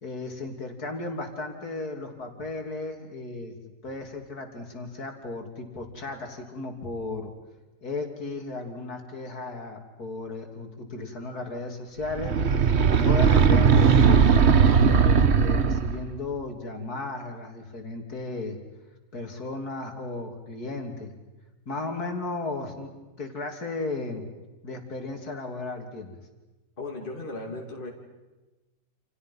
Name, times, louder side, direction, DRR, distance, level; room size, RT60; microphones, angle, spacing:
voice 1, 0.0-3.6 3.8-7.3 7.8-12.4 13.0-18.6 19.1-21.1 21.7-22.9 23.2-24.2 24.6-26.1, left 3 dB, 60° left, 3 dB, 3.6 m, -35 dB
sound 1, 12.1-16.0, right 6 dB, 45° right, 1.2 m, -18 dB
voice 2, 26.8-27.9, left 2 dB, 30° left, 0 dB, 2.9 m, -36 dB
29.0 x 29.0 x 5.6 m, 1.1 s
omnidirectional pair, 1.8 m